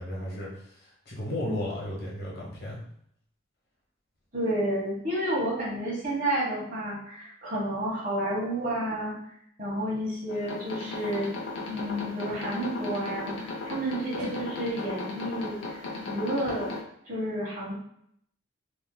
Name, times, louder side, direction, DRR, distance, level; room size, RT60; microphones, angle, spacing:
voice 1, 0.0-2.8, left 1 dB, 55° left, -5 dB, 1.1 m, -34 dB
voice 2, 4.3-9.1 9.6-11.3 11.7-16.7 17.1-17.7, right 1 dB, 45° right, -5 dB, 1.3 m, -30 dB
sound 1, 10.3-16.8, left 3 dB, 70° left, 0.7 m, -36 dB
3.5 x 2.7 x 2.2 m, 0.70 s
head